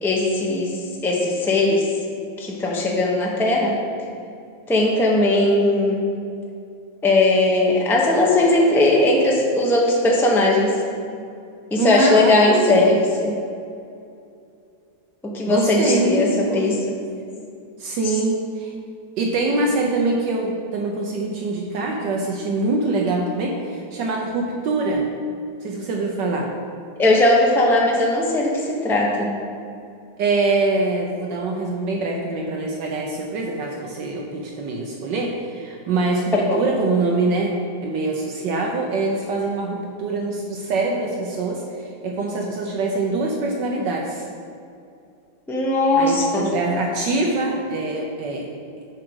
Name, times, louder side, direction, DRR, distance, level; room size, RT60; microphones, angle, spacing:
voice 1, 0.0-0.8 1.0-1.8 2.4-3.7 4.7-6.0 7.0-10.8 11.7-13.3 15.3-16.8 27.0-29.3 36.5-36.6 45.5-46.5, left 2 dB, 5° left, -2 dB, 0.4 m, -18 dB
voice 2, 11.7-12.8 15.5-16.8 17.8-18.7 19.2-25.0 25.6-26.5 30.2-41.6 42.0-44.2 46.0-48.5, right 3 dB, 70° right, 0 dB, 1.3 m, -24 dB
7.5 x 5.0 x 6.1 m, 2.5 s
omnidirectional pair, 2.1 m